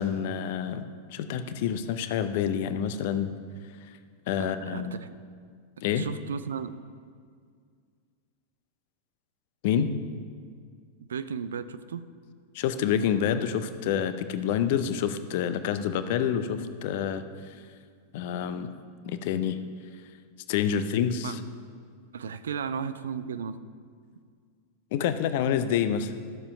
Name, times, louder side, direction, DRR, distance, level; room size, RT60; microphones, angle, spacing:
voice 1, 0.0-3.3 4.3-4.9 5.8-6.1 9.6-9.9 12.5-17.2 18.1-18.7 19.0-19.6 20.5-21.4 24.9-26.1, left 8 dB, 50° left, 11 dB, 0.6 m, -27 dB
voice 2, 4.4-5.1 5.9-6.7 11.1-12.0 21.2-21.4 22.1-23.6, right 7 dB, 65° right, 13 dB, 0.4 m, -34 dB
13.0 x 7.0 x 5.6 m, 2.1 s
figure-of-eight pair, 90°, 0 cm